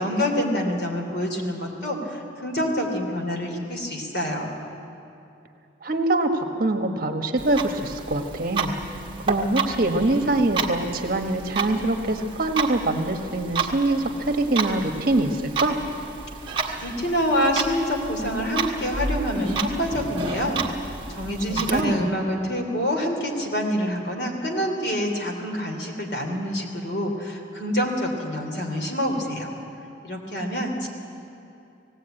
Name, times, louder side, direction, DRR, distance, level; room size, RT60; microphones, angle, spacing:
voice 1, 0.0-4.5 16.8-20.6 21.1-29.5 30.0-30.9, equal, 60° left, 2 dB, 3.1 m, -26 dB
voice 2, 5.8-8.7 9.3-15.8 21.5-22.0, right 2 dB, 50° right, 5 dB, 1.3 m, -24 dB
Clock, 7.4-21.8, right 4 dB, 25° right, 1.3 m, -31 dB
18.0 x 17.0 x 8.9 m, 2.7 s
head